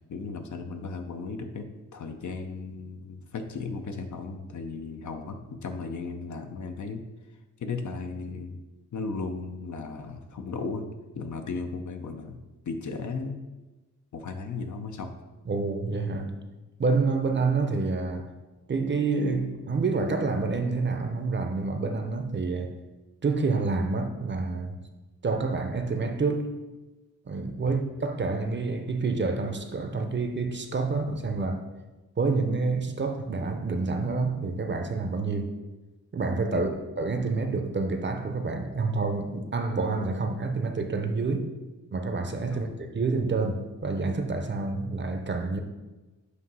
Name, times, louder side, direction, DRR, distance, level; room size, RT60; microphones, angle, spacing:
voice 1, 0.1-1.7 1.9-7.0 7.6-8.6 8.9-10.8 11.1-12.4 12.6-13.4 14.1-15.1 27.6-27.7 36.5-36.7 42.5-42.7, left 4 dB, 65° left, 0.7 m, -35 dB
voice 2, 15.5-16.3 16.8-18.3 18.7-22.7 23.2-24.8 25.2-26.5 27.3-31.6 32.2-35.5 36.1-41.5 41.9-45.6, right 3 dB, 35° right, 0.7 m, -28 dB
8.1 x 2.7 x 5.5 m
cardioid pair, 95°, 32 cm